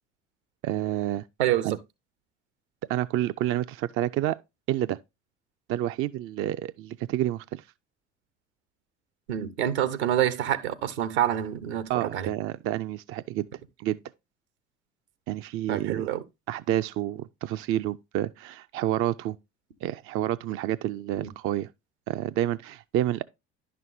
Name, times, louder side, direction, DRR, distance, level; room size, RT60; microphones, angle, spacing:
voice 1, 0.6-1.2 1.6-1.8 2.9-4.4 4.7-5.0 5.7-7.6 11.9-13.5 13.8-14.0 15.3-16.1 16.5-19.4 19.8-21.7 22.1-23.2, right 13 dB, 40° right, 0.4 m, -29 dB
voice 2, 1.4-1.8 9.3-12.3 15.7-16.2 21.2-21.3, right 11 dB, 70° right, 0.9 m, -27 dB
11.0 x 6.1 x 2.6 m
figure-of-eight pair, 55°, 35 cm